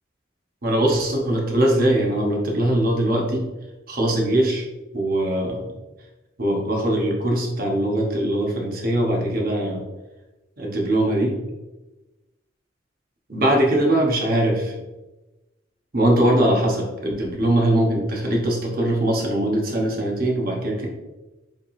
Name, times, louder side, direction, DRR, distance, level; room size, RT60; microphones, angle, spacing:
voice 1, 0.6-3.5 3.9-4.6 4.9-5.7 6.4-9.8 10.6-11.4 13.3-14.7 15.9-20.9, right 1 dB, 50° right, -1 dB, 1.0 m, -21 dB
5.2 x 3.4 x 2.6 m, 1.1 s
head